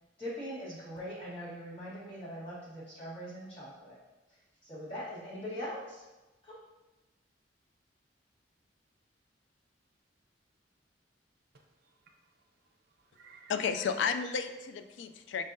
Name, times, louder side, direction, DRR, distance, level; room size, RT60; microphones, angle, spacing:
voice 1, 0.2-4.0 4.6-6.0 6.4-6.5, equal, 35° left, -10 dB, 1.4 m, -41 dB
voice 2, 11.5-12.5 12.9-14.0, right 4 dB, 60° right, 3 dB, 0.6 m, -58 dB
voice 3, 13.5-15.4, left 6 dB, 75° left, 9 dB, 0.3 m, -32 dB
5.2 x 3.6 x 2.6 m, 1.1 s
head